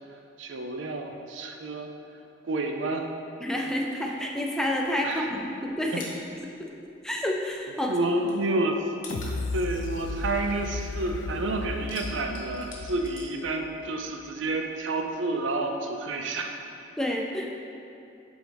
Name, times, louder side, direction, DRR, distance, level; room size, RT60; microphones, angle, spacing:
voice 1, 0.4-1.9 2.4-3.0 5.0-5.3 7.9-8.8 9.5-16.5, right 2 dB, 85° right, 4 dB, 0.5 m, -29 dB
voice 2, 3.4-5.9 7.0-7.9 17.0-17.5, left 1 dB, 5° left, -1 dB, 0.4 m, -29 dB
sound 1, 4.8-7.6 7.9-11.2 11.5-14.1 14.3-15.5, left 2 dB, 45° left, 1.1 m, -47 dB
sound 2, 9.1-14.0 14.4-14.5, left 3 dB, 80° left, 0.4 m, -35 dB
7.7 x 4.0 x 3.4 m, 2.8 s
head